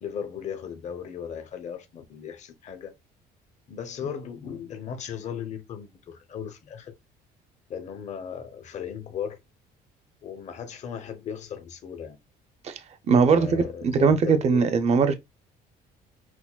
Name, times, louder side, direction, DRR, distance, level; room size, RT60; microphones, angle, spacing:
voice 1, 0.0-2.9 3.7-6.9 7.7-9.4 10.2-12.2 13.3-14.7, left 8 dB, 45° left, 0.7 m, -36 dB
voice 2, 13.1-15.1, right 5 dB, 40° right, 0.5 m, -20 dB
5.9 x 2.1 x 2.2 m
cardioid pair, 110°, 17 cm